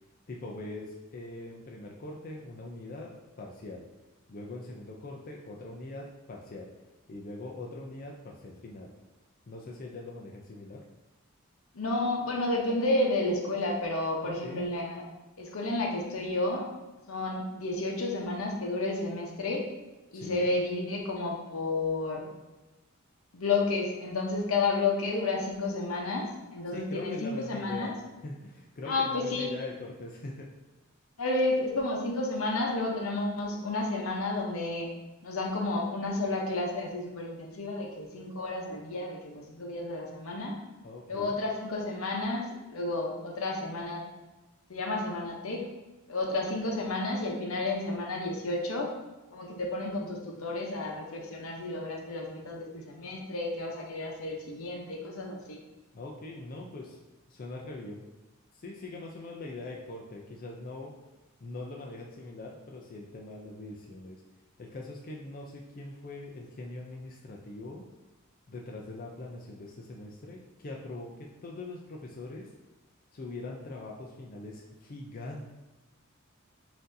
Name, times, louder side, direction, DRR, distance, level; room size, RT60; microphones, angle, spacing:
voice 1, 0.3-3.1 3.4-3.8 4.3-6.7 7.1-8.9 9.5-10.8 14.2-14.6 20.1-20.5 26.7-28.0 28.2-30.5 40.8-41.4 55.9-57.0 57.3-58.0 58.5-60.9 61.4-64.2 64.6-67.8 68.5-72.5 73.1-75.5, left 2 dB, 45° left, -1 dB, 0.4 m, -42 dB
voice 2, 11.7-15.0 15.4-16.7 17.1-19.6 20.1-22.3 23.3-27.9 28.9-29.6 31.2-34.9 35.2-40.5 41.1-44.0 44.7-45.6 46.1-48.9 49.3-55.6, left 2 dB, 75° left, 0 dB, 0.8 m, -31 dB
5.8 x 2.6 x 2.6 m, 1.1 s
head